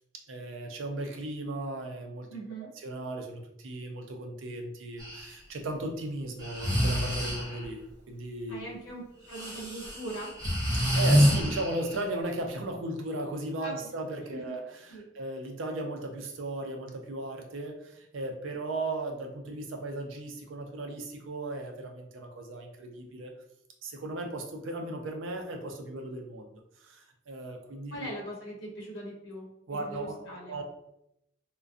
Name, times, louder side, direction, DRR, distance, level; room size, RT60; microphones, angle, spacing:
voice 1, 0.3-2.3 2.8-7.8 8.1-8.6 10.9-23.3 23.8-28.1 29.7-30.6, right 2 dB, 80° right, 3 dB, 0.4 m, -36 dB
voice 2, 2.3-2.7 8.5-10.3 11.4-11.6 13.6-13.7 14.3-14.4 14.9-15.1 27.9-30.6, right 1 dB, 70° left, -4 dB, 0.8 m, -41 dB
Breathing, 5.0-5.2 6.4-7.7 9.3-12.0, equal, 20° right, 0.6 m, -27 dB
2.5 x 2.2 x 2.4 m, 0.81 s
head